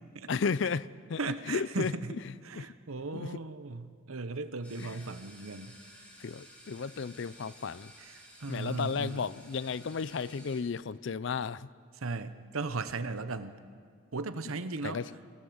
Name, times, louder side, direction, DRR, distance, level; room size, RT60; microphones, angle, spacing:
voice 1, 0.3-1.2 1.5-1.9 2.6-2.7 3.1-3.3 4.8-5.0 6.2-7.9 8.5-11.7 14.8-15.0, left 5 dB, 60° left, 19 dB, 0.4 m, -33 dB
voice 2, 1.2-2.1 2.4-5.8 8.0-9.3 12.0-13.6 14.1-15.0, right 3 dB, 85° right, 11 dB, 0.9 m, -37 dB
sound 1, 4.6-10.6, equal, 5° left, 3.0 m, -54 dB
25.5 x 16.5 x 7.1 m, 2.1 s
head